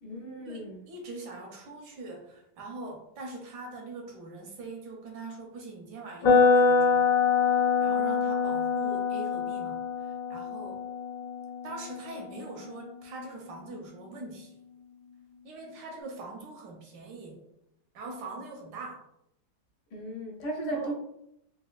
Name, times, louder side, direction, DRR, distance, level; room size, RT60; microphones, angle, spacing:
voice 1, 0.0-0.9 19.9-20.9, right 1 dB, 75° left, 0 dB, 1.4 m, -36 dB
voice 2, 0.9-7.0 7.8-9.8 10.3-10.8 11.6-14.5 15.4-17.4 17.9-19.0 20.7-20.9, right 3 dB, 70° right, 0 dB, 1.3 m, -42 dB
sound 1, 6.2-14.2, left 5 dB, 60° left, 1.0 m, -26 dB
4.2 x 2.3 x 2.3 m, 0.78 s
omnidirectional pair, 1.9 m